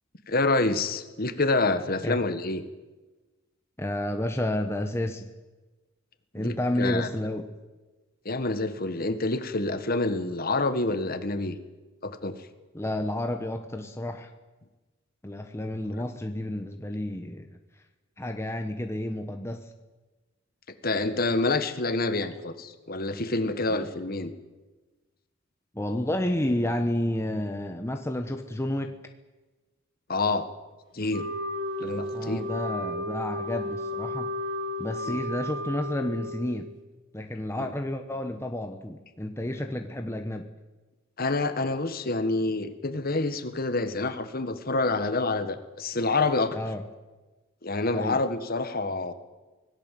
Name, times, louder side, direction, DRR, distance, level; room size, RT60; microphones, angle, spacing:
voice 1, 0.3-2.6 6.4-7.1 8.2-11.6 12.0-12.4 20.8-24.3 30.1-30.5 30.9-31.3 31.8-32.4 35.1-35.2 41.2-46.6 47.6-49.1, left 2 dB, 45° left, 9 dB, 1.7 m, -27 dB
voice 2, 3.8-5.3 6.3-7.5 12.7-14.3 15.2-17.5 18.2-19.7 23.7-23.9 25.7-29.0 32.1-34.3 34.8-36.7 37.1-40.5 46.5-46.8 47.9-48.2, left 1 dB, 15° left, 5 dB, 1.1 m, -30 dB
Wind instrument woodwind instrument, 31.1-36.7, left 1 dB, 60° right, 1.4 m, -33 dB
25.0 x 18.0 x 7.7 m, 1.2 s
head